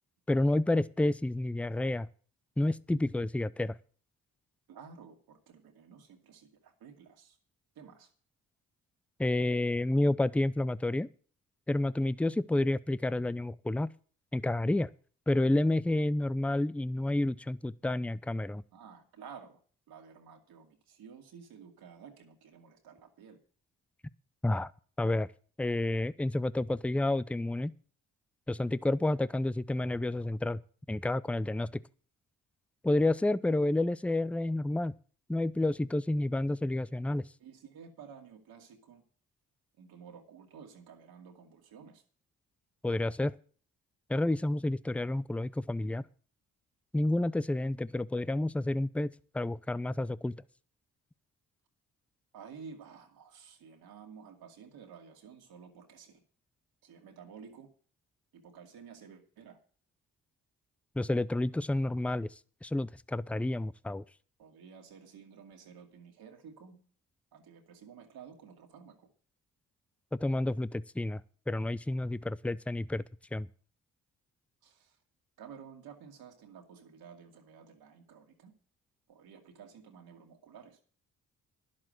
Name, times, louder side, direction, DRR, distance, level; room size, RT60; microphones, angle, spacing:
voice 1, 0.3-2.1 2.6-3.8 9.2-11.1 11.7-13.9 14.3-14.9 15.3-18.6 24.4-24.7 25.0-25.3 25.6-27.7 28.5-30.6 30.9-31.7 32.8-34.9 35.3-37.3 42.8-43.3 44.1-46.0 46.9-49.1 49.3-50.4 61.0-62.3 62.6-64.0 70.2-71.2 71.5-73.0 73.3-73.5, left 2 dB, 5° left, 0.5 m, -30 dB
voice 2, 4.7-7.4 7.7-8.1 18.7-19.6 19.9-23.4 37.4-39.0 39.8-42.0 52.3-56.2 56.8-57.7 58.3-59.6 64.4-66.8 67.3-69.1 74.6-75.0 75.4-78.5 79.1-80.8, right 6 dB, 75° right, 2.4 m, -52 dB
11.0 x 7.5 x 7.6 m
hypercardioid pair, 45°, 38 cm